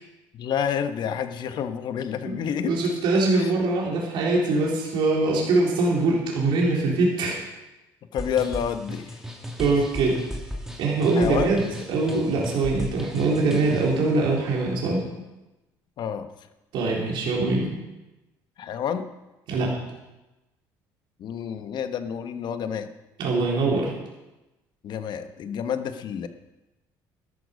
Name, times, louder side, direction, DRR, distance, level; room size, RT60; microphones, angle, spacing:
voice 1, 0.3-2.9 3.4-3.5 8.1-9.2 11.1-11.6 16.0-16.3 18.6-19.1 21.2-22.9 24.8-26.3, left 8 dB, 60° left, 9 dB, 1.2 m, -29 dB
voice 2, 2.6-7.4 9.6-10.2 10.8-15.0 16.7-17.7 19.5-19.7 23.2-23.9, right 3 dB, 70° right, -3 dB, 3.9 m, -23 dB
sound 1, 8.2-14.0, equal, 5° right, 2.4 m, -36 dB
13.0 x 12.0 x 5.3 m, 1.0 s
supercardioid pair, 90°, 9 cm